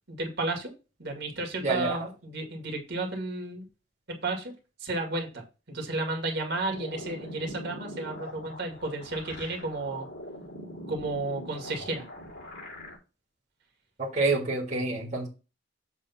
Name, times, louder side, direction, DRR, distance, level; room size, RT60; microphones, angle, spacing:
voice 1, 0.1-0.7 1.0-3.6 4.1-4.5 4.8-5.4 5.7-10.1 10.9-12.0, right 2 dB, 55° right, 3 dB, 2.0 m, -32 dB
voice 2, 1.6-2.0 14.0-15.3, right 3 dB, 40° right, -2 dB, 1.8 m, -27 dB
sound 1, 6.7-13.0, equal, 55° left, 3.6 m, -42 dB
7.4 x 3.6 x 5.6 m, 0.31 s
head